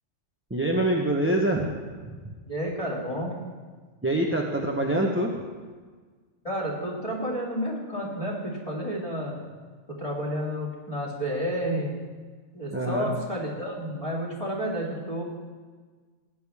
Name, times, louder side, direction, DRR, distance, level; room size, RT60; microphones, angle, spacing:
voice 1, 0.5-1.7 2.1-2.3 4.0-5.3 12.7-13.1, right 1 dB, 10° right, 0 dB, 0.8 m, -25 dB
voice 2, 2.5-3.3 6.4-9.4 10.0-11.9 12.5-15.2, equal, 25° left, -4 dB, 2.5 m, -30 dB
15.5 x 10.0 x 3.5 m, 1.5 s
omnidirectional pair, 1.3 m